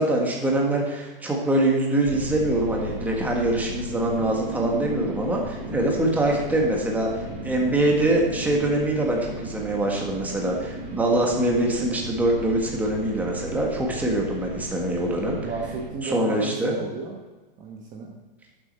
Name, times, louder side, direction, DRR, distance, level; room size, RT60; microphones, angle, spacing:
voice 1, 0.0-15.4 16.0-16.8, right 1 dB, 5° right, -1 dB, 1.6 m, -24 dB
sound 1, 2.0-15.9, right 1 dB, 50° right, 3.6 m, -35 dB
voice 2, 15.4-17.2 17.6-18.1, right 4 dB, 25° right, 0 dB, 1.2 m, -34 dB
11.5 x 7.6 x 4.4 m, 1.2 s
hypercardioid pair, 145°, 29 cm